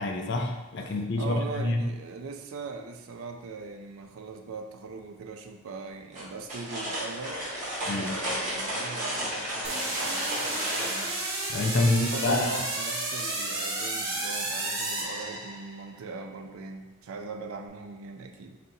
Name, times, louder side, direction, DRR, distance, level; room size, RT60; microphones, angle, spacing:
voice 1, 0.0-1.8 7.9-8.1 11.5-12.5, left 2 dB, 55° left, 3 dB, 0.5 m, -27 dB
voice 2, 0.9-7.4 7.8-11.3 11.8-18.6, right 4 dB, 80° right, 5 dB, 0.4 m, -40 dB
sound 1, 6.1-11.1, equal, 35° right, 1.0 m, -33 dB
sound 2, 9.6-15.9, right 2 dB, 65° right, 0.9 m, -32 dB
3.3 x 2.8 x 4.0 m, 1.1 s
head